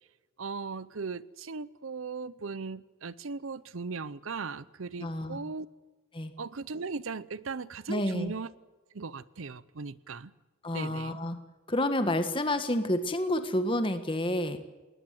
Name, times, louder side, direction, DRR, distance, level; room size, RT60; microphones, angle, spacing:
voice 1, 0.4-5.7 6.4-8.5 8.9-10.3 10.7-11.2, right 4 dB, 75° right, 0.7 m, -38 dB
voice 2, 5.0-5.4 6.1-6.3 7.9-8.3 10.6-11.4 11.7-14.6, left 1 dB, 25° left, 1.6 m, -29 dB
20.5 x 20.0 x 7.8 m
head